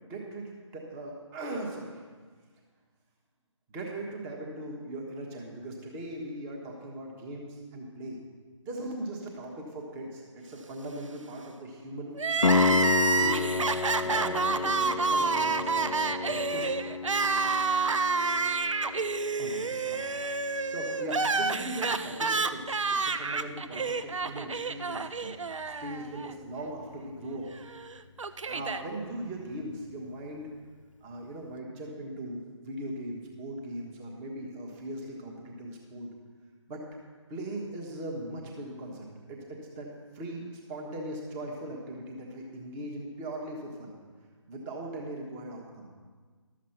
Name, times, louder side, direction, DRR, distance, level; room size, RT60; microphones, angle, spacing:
voice 1, 0.1-2.0 3.7-8.2 8.6-16.7 19.4-20.0 20.7-25.3 25.8-27.5 28.5-30.5 31.0-36.1 36.7-36.8 37.3-39.9 40.1-43.9 44.5-45.9, right 1 dB, 15° right, 0 dB, 1.2 m, -39 dB
Crying sobbing, 12.2-26.3 26.6-26.7 27.7-28.8, right 4 dB, 75° right, 0.6 m, -29 dB
Piano, 12.4-23.1 26.4-26.5, left 4 dB, 80° left, 0.5 m, -32 dB
12.5 x 7.4 x 5.9 m, 1.5 s
figure-of-eight pair, 150°, 16 cm